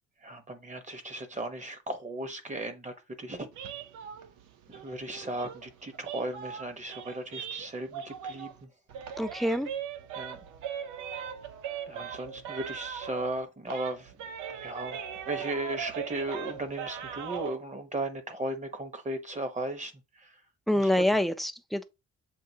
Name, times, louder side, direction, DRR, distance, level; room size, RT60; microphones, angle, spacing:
voice 1, 0.2-3.5 4.7-8.7 10.2-10.4 11.9-14.2 14.5-20.4 20.7-21.2, right 2 dB, 25° right, 0.9 m, -36 dB
sound 1, 3.5-8.6 8.9-13.4 13.7-17.6, right 8 dB, 85° right, 0.7 m, -39 dB
voice 2, 9.2-9.7 20.7-21.8, left 1 dB, ahead, 0.4 m, -26 dB
7.6 x 2.6 x 2.7 m
cardioid pair, 90°, 30 cm